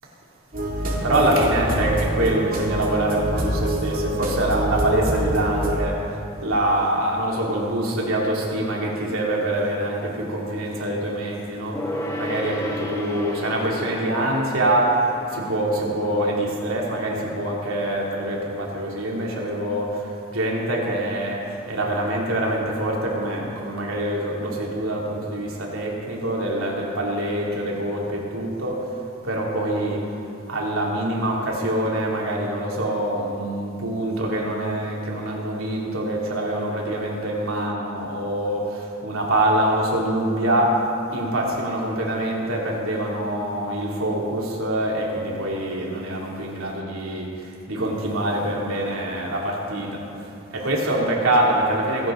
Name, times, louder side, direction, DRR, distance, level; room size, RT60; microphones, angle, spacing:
sound 1, 0.5-5.8, right 1 dB, 45° right, 2.3 m, -25 dB
voice 1, 0.8-30.2 30.5-52.1, right 1 dB, 85° right, -3 dB, 2.9 m, -25 dB
Gong, 11.7-17.6 17.9-18.0, left 1 dB, 15° left, 1.5 m, -34 dB
24.5 x 11.0 x 3.8 m, 2.6 s
head